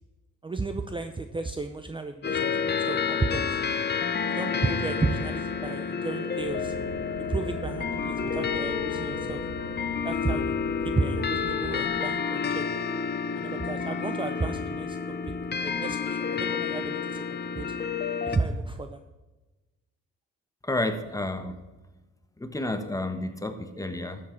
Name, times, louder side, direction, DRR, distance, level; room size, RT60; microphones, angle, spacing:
voice 1, 0.4-3.6 4.3-6.7 7.3-9.5 10.0-10.5 10.8-12.6 13.3-15.0 15.3-15.4 15.6-17.7 18.3-19.0, right 3 dB, 15° right, 7 dB, 0.6 m, -32 dB
sound 1, 2.2-18.4, left 6 dB, 35° left, 0.8 m, -30 dB
sound 2, 6.4-11.9, right 3 dB, 80° right, 1.9 m, -42 dB
Wind instrument woodwind instrument, 6.7-9.8 10.2-14.2, right 1 dB, 45° right, 1.6 m, -42 dB
voice 2, 20.6-21.5 22.4-24.2, left 2 dB, 10° left, 7 dB, 1.2 m, -30 dB
12.5 x 7.5 x 4.5 m, 1.1 s
cardioid pair, 90°, 30 cm